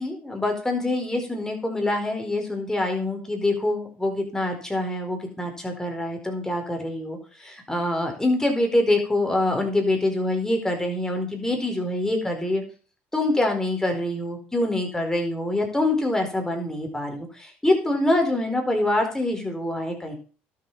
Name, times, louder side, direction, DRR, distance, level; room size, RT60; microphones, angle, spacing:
voice 1, 0.0-12.6 13.1-20.2, left 1 dB, 10° left, 3 dB, 4.5 m, -25 dB
12.0 x 7.5 x 5.7 m, 0.38 s
supercardioid pair, 70°, 5 cm